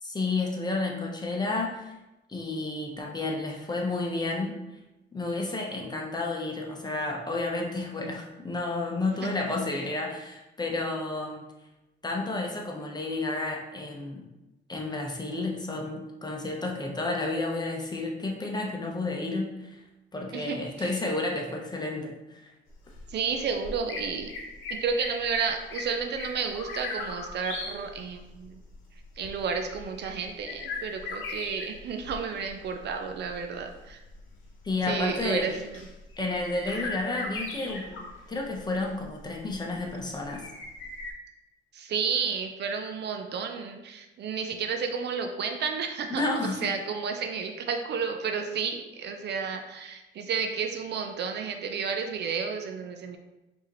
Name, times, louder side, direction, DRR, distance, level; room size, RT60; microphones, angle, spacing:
voice 1, 0.0-1.9 2.3-4.6 5.1-11.4 12.0-14.3 14.7-19.8 20.1-22.5 34.6-35.5 36.2-38.0 38.3-40.4 46.1-46.7, left 2 dB, 20° left, 0 dB, 0.8 m, -31 dB
voice 2, 20.3-20.9 23.1-24.3 24.8-28.6 29.2-34.0 34.8-35.8 36.7-36.8 41.7-46.2 46.6-53.2, right 6 dB, 60° right, 5 dB, 0.5 m, -31 dB
sound 1, 22.7-41.1, left 3 dB, 90° left, 0.8 m, -40 dB
4.7 x 2.8 x 3.0 m, 0.99 s
cardioid pair, 90°, 20 cm